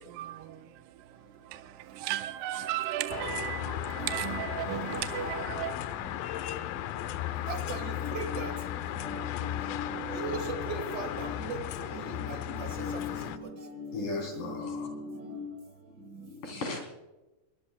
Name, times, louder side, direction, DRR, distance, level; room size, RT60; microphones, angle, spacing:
voice 1, 0.1-0.7 1.5-5.8, right 13 dB, 80° right, 2.1 m, -35 dB
sound 1, 3.1-13.4, left 13 dB, 80° left, 2.5 m, -36 dB
voice 2, 7.5-8.8 9.0-11.6 11.8-15.5, right 1 dB, 45° right, 1.5 m, -38 dB
voice 3, 13.9-14.9 16.4-16.8, left 3 dB, 60° left, 4.9 m, -35 dB
22.5 x 20.5 x 2.3 m
omnidirectional pair, 4.2 m